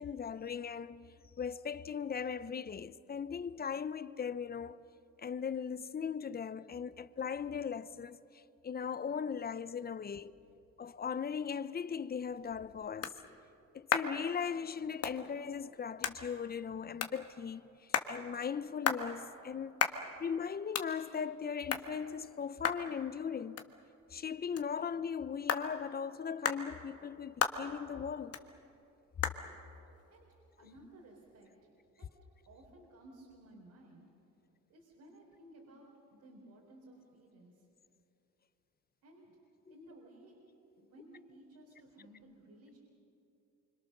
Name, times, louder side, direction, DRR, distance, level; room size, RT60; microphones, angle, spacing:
voice 1, 0.0-4.8 5.2-8.2 8.6-10.3 10.8-13.1 13.7-17.8 18.1-19.8 20.2-23.7 24.1-28.4, left 7 dB, 30° left, 0.7 m, -38 dB
sound 1, 12.1-31.4, left 7 dB, 55° left, 1.5 m, -40 dB
voice 2, 30.6-31.7 32.0-32.1 32.5-34.1 34.7-37.7 39.0-39.4 39.7-40.4 40.8-42.8, right 1 dB, 75° right, 4.1 m, -57 dB
26.0 x 25.0 x 6.6 m
cardioid pair, 90°, 30 cm